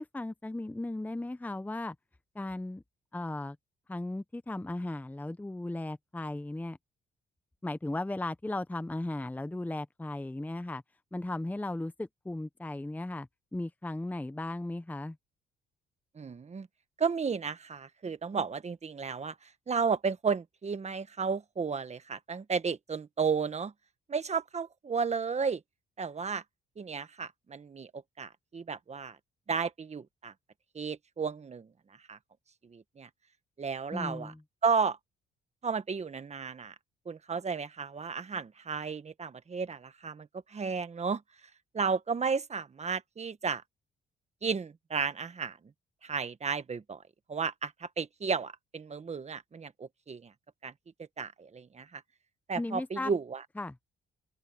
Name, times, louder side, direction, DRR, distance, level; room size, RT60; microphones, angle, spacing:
voice 1, 0.0-1.9 2.3-2.8 3.1-3.6 3.9-6.8 7.6-10.8 11.1-15.2 33.9-34.4 52.5-53.1 53.6-53.7, left 2 dB, 10° left, 0.8 m, -36 dB
voice 2, 16.1-16.7 17.0-23.7 24.1-25.6 26.0-26.4 26.8-29.2 29.5-30.3 30.7-31.7 32.1-32.2 32.6-33.1 33.6-34.3 34.6-35.0 35.6-36.7 37.0-41.2 41.7-43.6 44.4-45.6 46.0-47.0 47.3-50.3 50.6-50.7 51.2-52.0 52.5-53.4, right 5 dB, 35° right, 1.5 m, -33 dB
open air
cardioid pair, 90°, 20 cm